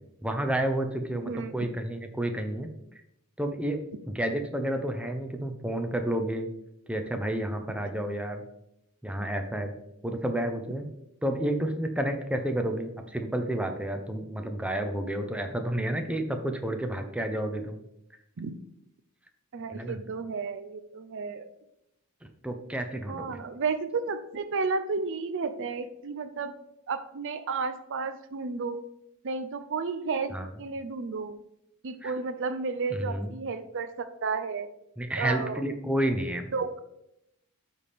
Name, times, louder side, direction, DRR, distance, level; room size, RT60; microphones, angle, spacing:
voice 1, 0.2-2.7 3.4-6.5 6.9-8.4 9.0-9.7 10.0-10.9 11.2-17.8 19.7-20.0 22.4-23.4 30.3-30.5 32.0-32.1 32.9-33.3 35.0-36.5, right 1 dB, 5° right, 5 dB, 0.6 m, -30 dB
voice 2, 1.1-1.6 18.4-18.5 19.5-21.5 23.1-26.6 26.9-28.8 29.2-31.4 31.8-34.7 35.2-35.6 36.5-36.8, right 4 dB, 55° right, 11 dB, 0.5 m, -32 dB
12.5 x 4.3 x 3.5 m, 0.82 s
head